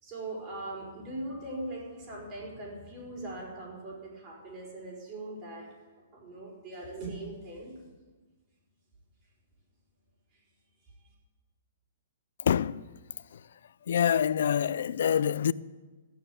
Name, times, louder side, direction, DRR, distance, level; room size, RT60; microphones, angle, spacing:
voice 1, 0.0-5.7 6.1-7.7, right 2 dB, 25° right, 4.9 m, -40 dB
voice 2, 12.4-12.8 13.3-13.5 13.9-15.5, left 8 dB, 60° left, 0.4 m, -26 dB
14.0 x 10.0 x 8.0 m
hypercardioid pair, 170°, 0 cm